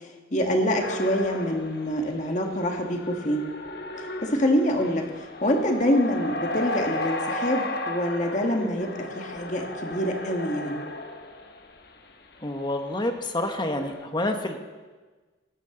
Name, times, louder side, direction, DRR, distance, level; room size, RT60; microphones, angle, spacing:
voice 1, 0.3-3.5 4.2-5.1 5.4-10.8, equal, 40° left, 2 dB, 1.7 m, -25 dB
sound 1, 0.8-11.8 12.5-12.7 13.2-14.1, left 1 dB, 55° left, 1.2 m, -35 dB
voice 2, 12.4-14.6, left 1 dB, 25° left, 5 dB, 1.1 m, -28 dB
17.5 x 12.5 x 3.9 m, 1.3 s
head